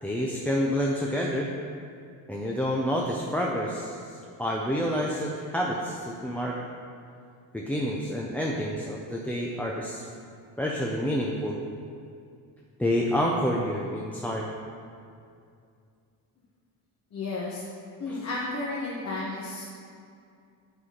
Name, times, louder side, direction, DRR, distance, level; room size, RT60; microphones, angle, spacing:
voice 1, 0.0-1.5 2.3-4.0 4.4-6.6 7.5-10.0 10.6-11.6 12.8-14.5 18.1-18.2, equal, 5° left, -3 dB, 0.4 m, -28 dB
voice 2, 17.1-17.6 18.0-19.6, left 2 dB, 45° left, -5 dB, 1.1 m, -32 dB
7.9 x 4.1 x 5.7 m, 2.4 s
cardioid pair, 130°, 37 cm